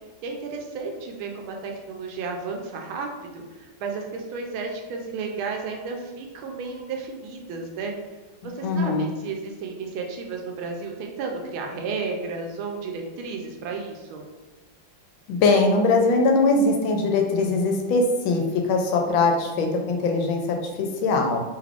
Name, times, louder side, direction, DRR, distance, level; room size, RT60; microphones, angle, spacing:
voice 1, 0.2-7.9 8.4-14.3, right 4 dB, 85° right, 2 dB, 1.4 m, -33 dB
voice 2, 8.6-9.1 15.3-21.4, left 3 dB, 80° left, 3 dB, 1.4 m, -21 dB
3.5 x 3.3 x 2.4 m, 1.2 s
omnidirectional pair, 2.2 m